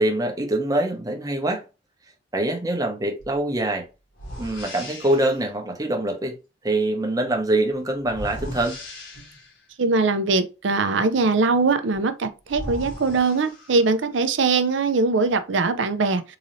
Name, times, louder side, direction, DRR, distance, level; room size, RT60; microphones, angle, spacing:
voice 1, 0.0-1.6 2.3-3.8 4.4-6.4 6.6-8.8, right 1 dB, 20° right, 0.8 m, -24 dB
sound 1, 3.2-3.4 4.1-5.4 8.0-9.6 11.9-12.0 12.5-14.1, equal, 80° left, 1.6 m, -37 dB
voice 2, 9.8-16.2, right 4 dB, 70° right, 0.5 m, -21 dB
3.8 x 2.7 x 3.1 m
head